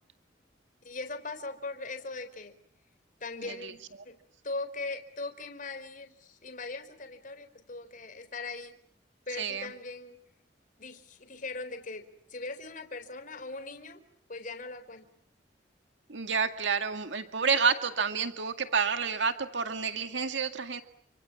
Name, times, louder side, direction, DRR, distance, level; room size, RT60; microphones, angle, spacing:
voice 1, 0.8-2.6 3.2-4.2 4.4-8.8 9.3-10.2 10.8-14.0 14.3-15.1, left 3 dB, 45° left, 9 dB, 4.1 m, -40 dB
voice 2, 9.4-9.7 16.1-20.8, right 5 dB, 80° right, 7 dB, 2.1 m, -29 dB
29.5 x 26.5 x 7.5 m, 0.66 s
head